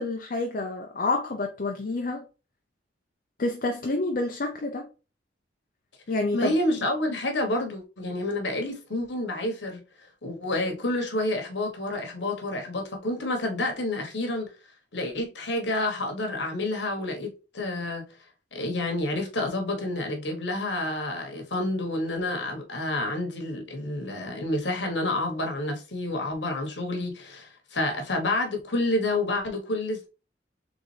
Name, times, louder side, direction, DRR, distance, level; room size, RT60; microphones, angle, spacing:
voice 1, 0.0-2.2 3.4-4.8 6.1-6.6, left 2 dB, 50° left, 0.6 m, -28 dB
voice 2, 6.3-9.8 10.2-14.5 14.9-17.3 17.5-18.1 18.5-30.1, left 2 dB, 75° left, 1.3 m, -29 dB
4.0 x 3.5 x 3.3 m
head